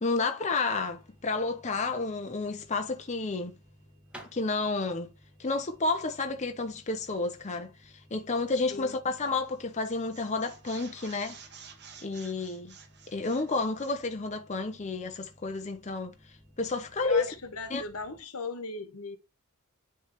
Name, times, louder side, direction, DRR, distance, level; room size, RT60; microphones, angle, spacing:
voice 1, 0.0-3.5 4.3-5.1 5.4-11.4 12.0-12.7 13.1-16.1 16.6-17.3 17.7-17.8, left 3 dB, 30° left, 0.7 m, -31 dB
sound 1, 0.7-18.2, equal, 25° right, 4.4 m, -59 dB
sound 2, 4.0-7.9, right 1 dB, 5° right, 1.5 m, -54 dB
voice 2, 8.7-9.0 17.0-19.2, left 3 dB, 85° left, 1.3 m, -38 dB
sound 3, 9.3-9.5 9.8-14.0, right 6 dB, 50° right, 1.3 m, -51 dB
9.7 x 3.4 x 3.0 m
head